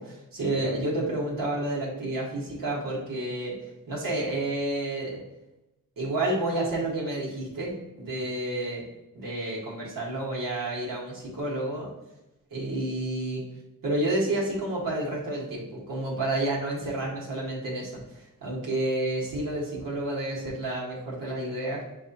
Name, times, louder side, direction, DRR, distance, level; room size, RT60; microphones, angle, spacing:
voice 1, 0.0-3.5 3.9-5.2 6.0-8.8 9.1-11.9 12.5-13.4 13.8-21.8, right 1 dB, 75° right, -5 dB, 1.5 m, -30 dB
7.3 x 2.4 x 2.7 m, 0.94 s
wide cardioid pair, 120°, 34 cm